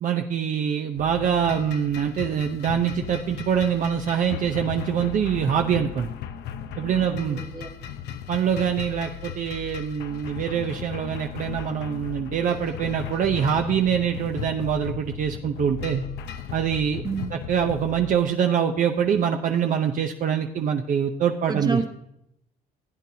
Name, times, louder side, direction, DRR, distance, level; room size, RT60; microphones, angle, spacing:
voice 1, 0.0-6.1 6.8-7.4 8.3-16.0 16.5-17.0 17.3-21.8, right 8 dB, 50° right, 4 dB, 0.7 m, -24 dB
sound 1, 1.0-18.2, left 7 dB, 80° left, 0.8 m, -36 dB
voice 2, 7.0-7.7 17.0-17.4 21.5-21.9, right 4 dB, 25° right, 6 dB, 1.2 m, -29 dB
15.5 x 9.1 x 2.8 m, 0.78 s
cardioid pair, 110°, 17 cm